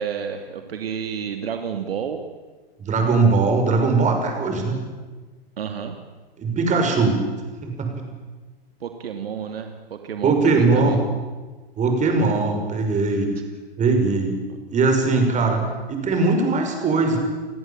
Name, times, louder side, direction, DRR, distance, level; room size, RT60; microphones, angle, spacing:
voice 1, 0.0-2.2 5.6-6.0 8.8-11.0, right 7 dB, 70° right, 6 dB, 2.5 m, -30 dB
voice 2, 2.8-4.8 6.4-7.2 7.6-8.0 10.2-11.0 11.8-13.3 13.8-14.3 14.7-15.6 15.9-17.2, right 3 dB, 25° right, 4 dB, 6.4 m, -20 dB
30.0 x 18.0 x 8.8 m, 1.3 s
figure-of-eight pair, 105°, 31 cm